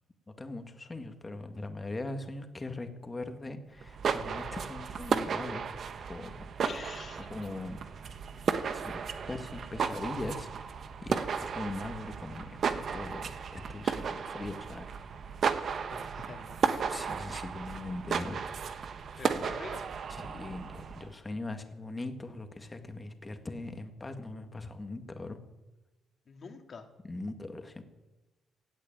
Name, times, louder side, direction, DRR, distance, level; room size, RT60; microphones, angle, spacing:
voice 1, 0.3-5.7 6.1-6.4 7.3-7.8 8.7-9.0 9.3-10.5 11.0-14.8 16.9-18.4 19.1-19.5 20.1-25.4 27.0-27.8, left 2 dB, 20° left, 6 dB, 1.9 m, -40 dB
sound 1, 3.8-21.1, right 6 dB, 55° right, 1.1 m, -34 dB
voice 2, 6.6-7.3 15.9-16.7 19.2-19.8 26.3-26.9, left 5 dB, 45° left, 5 dB, 2.2 m, -46 dB
16.5 x 8.3 x 8.9 m, 1.1 s
cardioid pair, 90°, 0 cm